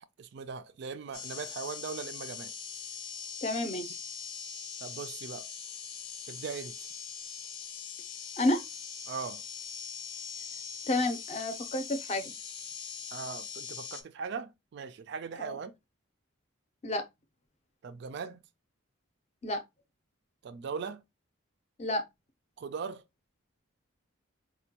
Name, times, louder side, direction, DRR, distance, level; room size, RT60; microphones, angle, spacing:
voice 1, 0.2-2.5 4.8-5.5 6.3-6.8 9.1-9.4 13.1-15.7 17.8-18.4 20.4-21.0 22.6-23.0, right 5 dB, 55° right, 0.3 m, -39 dB
sound 1, 1.1-14.0, left 6 dB, 85° left, 0.6 m, -42 dB
voice 2, 3.4-4.0 8.4-8.6 10.9-12.3 15.4-15.6 16.8-17.0 19.4-19.6 21.8-22.0, left 1 dB, 30° left, 0.5 m, -30 dB
4.3 x 2.2 x 2.8 m
head